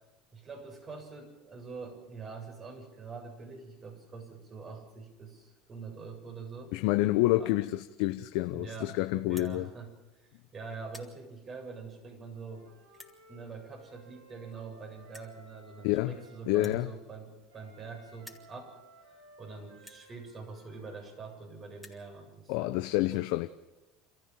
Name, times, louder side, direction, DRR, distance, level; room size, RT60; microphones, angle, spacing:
voice 1, 0.3-6.8 7.4-7.5 8.5-9.0 9.3-12.7 13.3-18.8 19.4-22.7, right 4 dB, 35° right, 7.6 m, -45 dB
voice 2, 6.7-9.7 15.8-16.2 16.5-16.9 22.5-23.5, left 17 dB, 70° left, 0.8 m, -28 dB
sound 1, 9.3-9.5 10.2-10.4 10.7-11.1 11.9-12.0 12.9-13.2 14.2-14.3 14.5-14.6 15.1-15.4 16.5-17.9 18.1-18.5 19.2-19.3 19.8-20.0 21.0-21.1 21.3-21.4 21.6-22.0, left 1 dB, 5° left, 3.7 m, -52 dB
Wind instrument woodwind instrument, 12.3-16.5 17.5-21.4, right 1 dB, 90° right, 7.1 m, -58 dB
28.5 x 14.5 x 7.7 m
hypercardioid pair, 85°, 0 cm